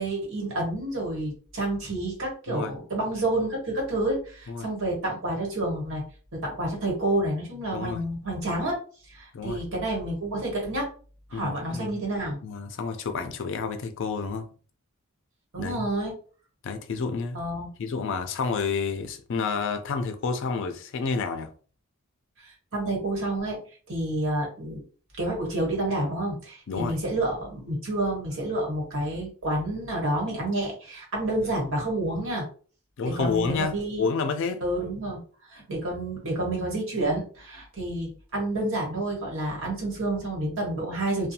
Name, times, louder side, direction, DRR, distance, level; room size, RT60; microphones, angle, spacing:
voice 1, 0.0-6.0 6.3-8.7 9.1-10.9 11.3-12.4 15.5-16.1 17.3-17.7 22.4-23.6 23.9-24.8 25.2-32.5 33.0-34.0 34.6-35.2 35.5-41.3, right 1 dB, 65° right, 1.2 m, -29 dB
voice 2, 7.7-8.0 9.3-9.6 11.3-12.0 12.4-14.5 15.6-15.9 16.6-17.4 17.8-21.5 26.7-27.0 33.0-34.6, left 5 dB, 60° left, 0.4 m, -29 dB
2.6 x 2.2 x 2.7 m
head